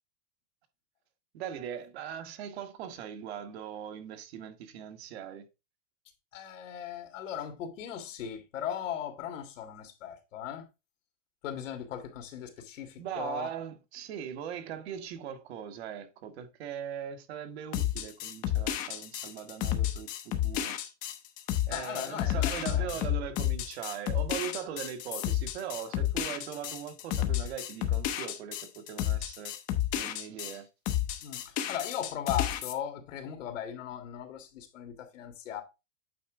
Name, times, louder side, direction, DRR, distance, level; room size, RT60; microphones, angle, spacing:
voice 1, 1.3-5.5 13.0-20.8 21.7-29.5 29.9-30.7, right 9 dB, 55° right, 1.3 m, -40 dB
voice 2, 6.3-10.6 11.4-13.5 21.7-23.0 31.2-35.6, left 10 dB, 85° left, 2.0 m, -38 dB
sound 1, 17.7-30.6 30.9-32.7, left 12 dB, 20° left, 0.6 m, -31 dB
8.4 x 4.4 x 3.6 m
supercardioid pair, 170°, 37 cm